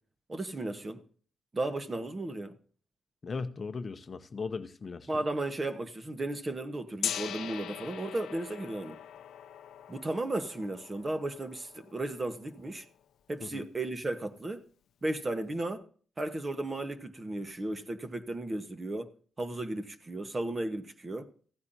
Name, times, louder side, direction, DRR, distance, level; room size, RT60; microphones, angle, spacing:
voice 1, 0.3-1.0 1.5-2.6 5.1-9.0 9.9-12.8 13.3-14.6 15.0-15.8 16.2-19.1 19.4-21.3, right 2 dB, 30° right, 1.3 m, -35 dB
voice 2, 3.2-5.1 13.4-13.7, left 4 dB, 40° left, 0.7 m, -37 dB
Gong, 7.0-12.9, left 10 dB, 85° left, 0.6 m, -41 dB
15.5 x 9.4 x 2.7 m
cardioid pair, 100°, 0 cm